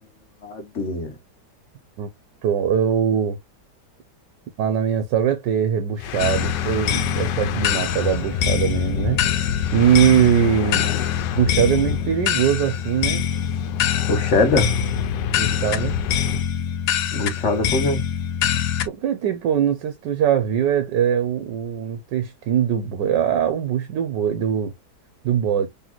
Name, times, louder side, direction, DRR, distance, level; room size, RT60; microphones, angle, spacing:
voice 1, 0.4-1.2 14.1-14.8 17.1-18.0, left 2 dB, 50° left, 1.1 m, -22 dB
voice 2, 2.4-3.4 4.6-10.9 11.4-13.2 15.4-16.0 18.8-24.7 25.2-25.7, right 9 dB, 85° right, 1.3 m, -21 dB
sound 1, 6.0-16.5, left 8 dB, 85° left, 1.3 m, -30 dB
sound 2, 6.2-18.9, left 9 dB, 70° left, 0.9 m, -24 dB
3.9 x 3.3 x 2.9 m
omnidirectional pair, 1.8 m